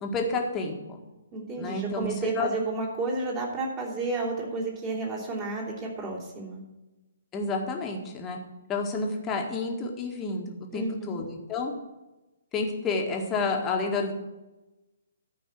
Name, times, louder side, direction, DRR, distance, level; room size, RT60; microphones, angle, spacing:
voice 1, 0.0-1.0 1.6-2.5 7.3-8.4 8.7-11.7 12.5-14.1, left 3 dB, 20° left, 1 dB, 1.8 m, -30 dB
voice 2, 1.3-6.6 10.7-11.2, right 3 dB, 25° right, -3 dB, 3.4 m, -31 dB
13.5 x 5.3 x 7.7 m, 1.1 s
figure-of-eight pair, 130°, 0 cm